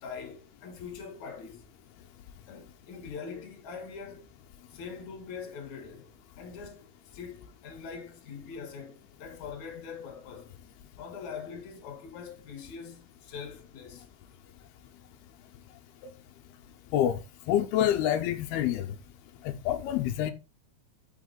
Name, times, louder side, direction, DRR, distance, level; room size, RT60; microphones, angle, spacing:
voice 1, 0.0-1.7 2.5-4.3 4.7-6.1 6.4-10.5 11.0-14.1, left 6 dB, 60° left, 2.3 m, -43 dB
voice 2, 17.5-18.9 19.7-20.3, left 11 dB, 80° left, 2.7 m, -26 dB
7.0 x 5.9 x 3.9 m
omnidirectional pair, 4.6 m